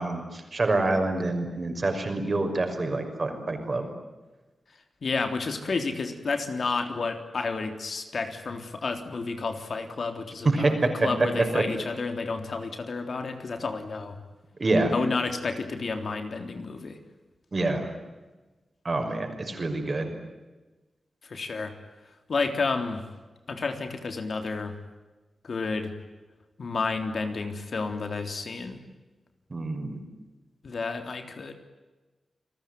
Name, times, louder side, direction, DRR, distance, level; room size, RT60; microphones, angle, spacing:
voice 1, 0.0-3.9 10.4-10.7 11.0-11.1 11.5-11.6 14.6-14.9 17.5-17.9 18.8-20.1 29.5-30.0, right 2 dB, 35° right, 6 dB, 5.9 m, -26 dB
voice 2, 5.0-14.2 14.9-17.0 21.2-21.7 22.3-23.0 23.5-24.8 25.4-25.9 26.6-28.8 30.6-31.5, left 4 dB, 55° left, 6 dB, 3.5 m, -31 dB
29.5 x 20.5 x 9.4 m, 1.2 s
wide cardioid pair, 130°, 0 cm